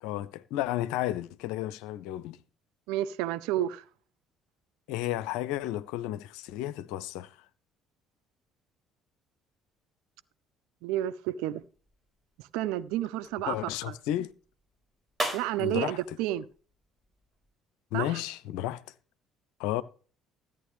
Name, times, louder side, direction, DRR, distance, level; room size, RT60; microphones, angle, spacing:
voice 1, 0.0-2.4 4.9-7.4 13.5-14.3 15.6-16.2 17.9-18.8 19.6-19.8, left 13 dB, 60° left, 0.6 m, -32 dB
voice 2, 2.9-3.8 10.8-11.6 12.5-13.6 13.9-14.0 15.3-16.4 17.9-18.2, right 13 dB, 60° right, 0.6 m, -30 dB
sound 1, 11.5-17.5, right 1 dB, 25° right, 4.8 m, -42 dB
14.0 x 8.8 x 3.4 m
figure-of-eight pair, 50°, 0 cm